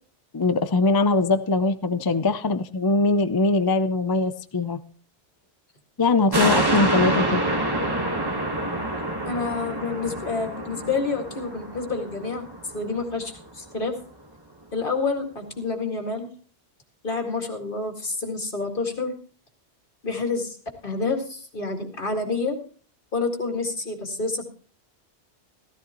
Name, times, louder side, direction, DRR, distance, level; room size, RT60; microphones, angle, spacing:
voice 1, 0.3-4.8 6.0-7.4, left 3 dB, 35° left, 11 dB, 0.4 m, -22 dB
sound 1, 6.3-13.0 13.4-13.5, right 1 dB, 20° right, 1.3 m, -26 dB
voice 2, 9.2-12.5 12.7-13.9 14.7-16.3 17.0-19.1 20.0-20.6 20.8-22.6 23.1-24.5, left 3 dB, 50° left, 3 dB, 2.2 m, -28 dB
15.0 x 14.5 x 3.0 m, 0.43 s
omnidirectional pair, 1.1 m